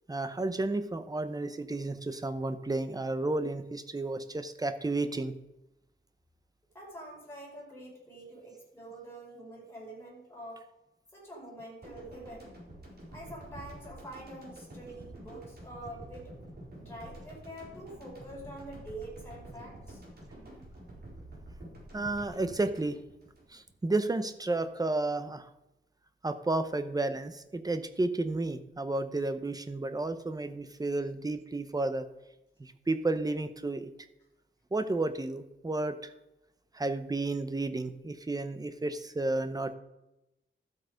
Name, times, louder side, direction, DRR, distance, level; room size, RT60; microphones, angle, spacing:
voice 1, 0.1-5.3 21.9-23.0 23.5-25.5 26.2-32.1 32.6-33.9 34.7-36.1 36.7-39.8, right 2 dB, 20° right, 10 dB, 0.8 m, -32 dB
voice 2, 6.7-10.6 11.1-12.5 13.1-16.3 16.8-20.0, right 1 dB, 10° left, -5 dB, 5.1 m, -46 dB
sound 1, 11.8-24.0 24.3-24.4, right 1 dB, 50° right, 4.4 m, -48 dB
12.5 x 8.0 x 5.1 m, 0.94 s
wide cardioid pair, 170°, 21 cm